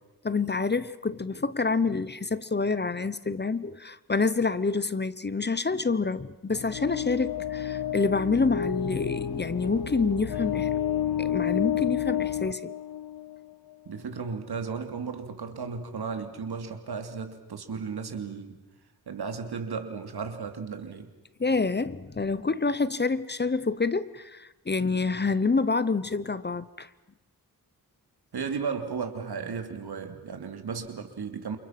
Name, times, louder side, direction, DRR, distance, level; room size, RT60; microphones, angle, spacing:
voice 1, 0.2-10.7 11.2-12.7 21.4-26.9, left 4 dB, 25° left, 0.9 m, -27 dB
sound 1, 6.5-13.5, left 9 dB, 70° left, 0.9 m, -30 dB
voice 2, 13.9-18.6 19.1-21.1 28.3-31.6, right 5 dB, 80° right, 3.0 m, -35 dB
29.0 x 28.5 x 6.0 m
wide cardioid pair, 120°, 38 cm